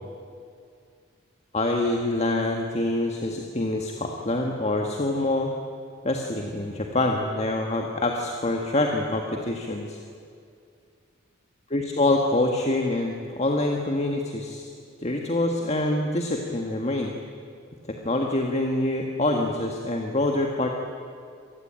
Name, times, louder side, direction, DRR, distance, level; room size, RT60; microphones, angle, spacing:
voice 1, 1.5-5.5 6.0-10.0 11.7-14.7 15.0-17.1 17.9-20.7, left 2 dB, 30° left, 2 dB, 1.7 m, -25 dB
26.5 x 19.5 x 9.0 m, 2.3 s
head